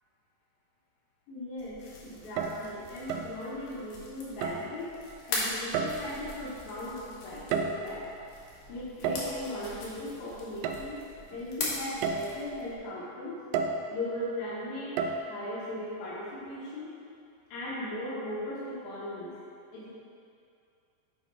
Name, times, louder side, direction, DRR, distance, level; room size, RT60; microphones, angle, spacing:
voice 1, 1.3-4.9 5.3-8.0 8.6-11.0 11.3-13.4 13.9-15.0 15.3-16.9 17.5-19.3 19.7-19.9, left 1 dB, 80° left, -8 dB, 3.1 m, -38 dB
sound 1, 1.6-12.8, left 2 dB, 65° left, 2.2 m, -41 dB
sound 2, 2.2-2.7 3.1-3.4 4.4-4.7 5.7-6.2 7.3-8.0 9.0-9.4 10.6-10.8 11.3-11.4 12.0-12.3 13.5-13.9 15.0-15.2, right 5 dB, 85° right, 1.9 m, -31 dB
8.1 x 4.1 x 4.8 m, 2.5 s
omnidirectional pair, 4.3 m